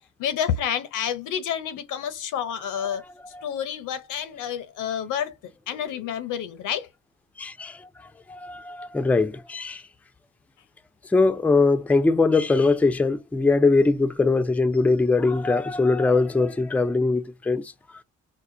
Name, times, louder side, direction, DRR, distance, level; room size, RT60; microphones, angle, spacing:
voice 1, 0.2-3.0 3.4-5.3 5.7-6.9, left 9 dB, 90° left, 0.7 m, -29 dB
voice 2, 7.4-7.8 8.3-9.8 11.1-17.7, left 3 dB, 5° left, 0.4 m, -21 dB
4.7 x 2.1 x 3.7 m
cardioid pair, 90°, 30 cm